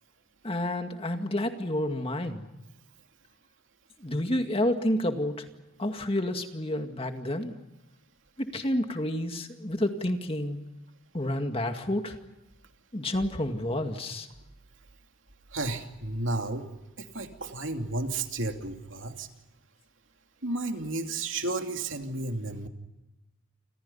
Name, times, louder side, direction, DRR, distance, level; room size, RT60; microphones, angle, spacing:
voice 1, 0.4-2.5 4.0-5.5 5.8-7.5 8.4-10.6 11.1-12.2 12.9-14.3, left 1 dB, 25° left, 5 dB, 2.1 m, -29 dB
voice 2, 15.5-16.6 17.0-19.3 20.4-22.7, right 2 dB, 70° right, 4 dB, 2.8 m, -32 dB
29.0 x 27.0 x 5.6 m, 0.99 s
head